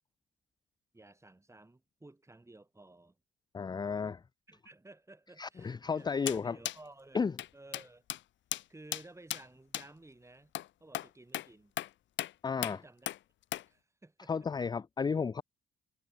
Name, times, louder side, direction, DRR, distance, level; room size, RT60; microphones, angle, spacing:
voice 1, 0.9-3.2 4.5-8.0 8.7-10.5 10.8-11.7 12.7-13.1 13.7-14.5, right 2 dB, 15° right, 5.0 m, -55 dB
voice 2, 3.5-4.2 5.4-6.6 7.1-7.3 12.4-12.8 14.3-15.4, left 5 dB, 20° left, 0.4 m, -33 dB
sound 1, 6.3-6.4 6.6-6.8 7.4-7.5 7.7-7.8 8.1-8.2 8.5-8.6 8.9-9.0 9.3-9.4 9.7-9.9 10.5-10.7 10.9-11.1 11.3-11.5 11.8-11.9 12.2-12.3 12.6-12.8 13.1-13.2 13.5-13.6, left 13 dB, 70° left, 0.7 m, -36 dB
cardioid pair, 90°, 20 cm